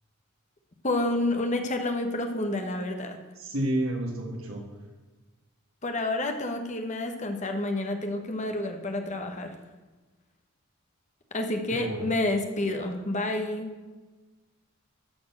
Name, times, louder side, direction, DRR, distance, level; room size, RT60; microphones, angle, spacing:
voice 1, 0.8-3.2 5.8-9.5 11.3-13.7, left 2 dB, 35° left, 5 dB, 1.1 m, -29 dB
voice 2, 3.4-4.7 11.7-12.0, right 1 dB, 70° right, 0 dB, 2.3 m, -30 dB
12.5 x 4.5 x 7.4 m, 1.3 s
head